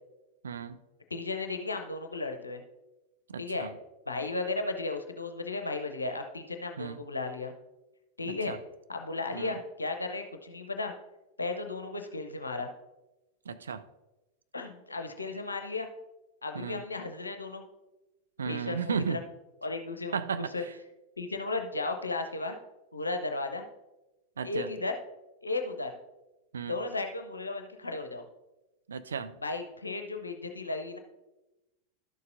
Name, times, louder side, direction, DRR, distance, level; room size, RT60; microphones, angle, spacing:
voice 1, 0.4-0.8 3.3-3.7 6.8-7.0 8.3-8.6 9.3-9.6 13.5-13.8 16.5-16.8 18.4-19.2 20.1-20.5 24.4-24.7 26.5-26.8 28.9-29.4, right 6 dB, 70° right, 10 dB, 0.4 m, -34 dB
voice 2, 1.1-2.6 3.4-3.7 4.1-7.5 8.2-8.6 8.9-10.9 11.4-12.7 14.5-15.9 16.4-17.6 18.4-19.2 19.6-20.2 20.5-20.6 21.2-22.6 22.9-23.6 24.4-24.9 25.4-25.9 26.6-28.2 29.4-31.0, left 3 dB, 80° left, 5 dB, 0.6 m, -35 dB
12.0 x 6.7 x 2.5 m, 1.0 s
figure-of-eight pair, 90°, 0 cm